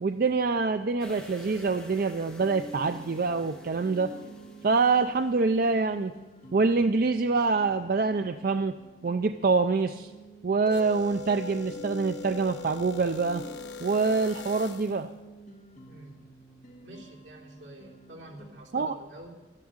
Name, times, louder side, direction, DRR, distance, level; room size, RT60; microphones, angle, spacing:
voice 1, 0.0-4.1 4.6-6.1 6.5-8.7 9.0-10.1 10.4-13.4 13.8-15.1 18.7-19.0, right 4 dB, 50° right, 9 dB, 0.4 m, -25 dB
sound 1, 1.0-5.8 6.2-6.3, left 1 dB, 5° left, 1.7 m, -49 dB
jazz guitar, 2.4-18.5, right 1 dB, 40° left, 1.7 m, -48 dB
sound 2, 10.7-15.1, left 5 dB, 70° left, 0.7 m, -41 dB
voice 2, 15.9-16.2 16.8-19.3, right 1 dB, 80° right, -2 dB, 3.2 m, -48 dB
12.5 x 10.5 x 8.8 m, 1.2 s
head